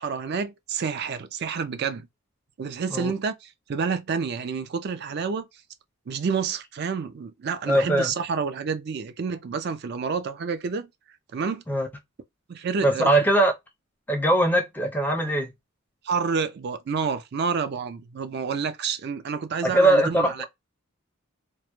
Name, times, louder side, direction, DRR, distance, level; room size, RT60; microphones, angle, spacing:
voice 1, 0.0-2.1 2.6-5.5 6.1-10.9 11.3-11.6 12.5-13.2 16.0-20.4, right 5 dB, 50° right, 0.4 m, -29 dB
voice 2, 7.7-8.1 11.7-11.9 12.8-13.5 14.1-15.5 19.6-20.5, right 1 dB, 10° left, 0.5 m, -21 dB
2.1 x 2.1 x 2.9 m
head